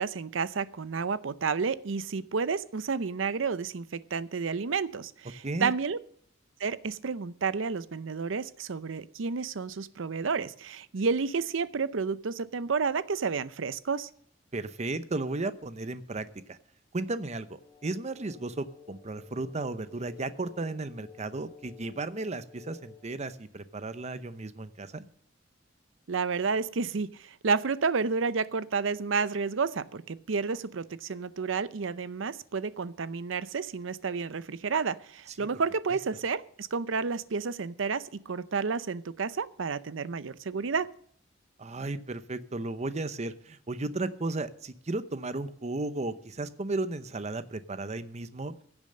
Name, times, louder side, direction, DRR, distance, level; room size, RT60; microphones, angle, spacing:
voice 1, 0.0-6.0 6.6-14.1 26.1-40.9, right 5 dB, 70° right, 16 dB, 0.6 m, -31 dB
voice 2, 14.5-16.6 16.9-25.0 35.4-35.5 41.6-48.5, right 2 dB, 35° right, 12 dB, 0.8 m, -34 dB
sound 1, 17.6-23.2, left 6 dB, 25° left, 1.8 m, -54 dB
16.0 x 7.1 x 6.5 m, 0.62 s
head